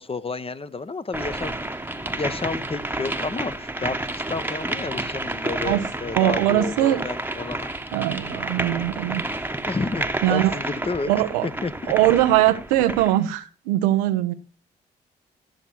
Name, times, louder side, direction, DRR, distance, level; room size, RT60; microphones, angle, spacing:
voice 1, 0.0-1.6 2.0-7.7 9.7-11.1 11.4-11.9, left 3 dB, 30° left, 0.9 m, -31 dB
sound 1, 1.1-13.2, right 1 dB, 10° right, 1.1 m, -30 dB
voice 2, 6.2-7.0 7.9-9.2 10.2-10.5 11.1-11.5 11.9-14.3, right 14 dB, 90° right, 0.8 m, -21 dB
13.0 x 6.9 x 4.5 m
hypercardioid pair, 45°, 20 cm